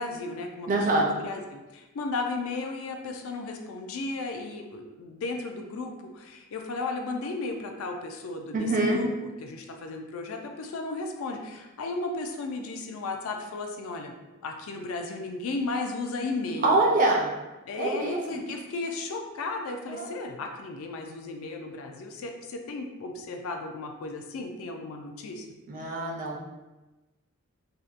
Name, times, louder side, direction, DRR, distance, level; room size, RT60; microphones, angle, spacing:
voice 1, 0.0-9.1 9.4-14.1 14.4-16.8 17.7-25.5, left 3 dB, 65° left, 3 dB, 0.3 m, -35 dB
voice 2, 0.7-1.1 8.5-9.0 16.6-17.3 17.8-18.4 19.9-20.1 25.7-26.4, right 2 dB, 35° right, -1 dB, 0.4 m, -25 dB
2.7 x 2.1 x 2.4 m, 1.1 s
head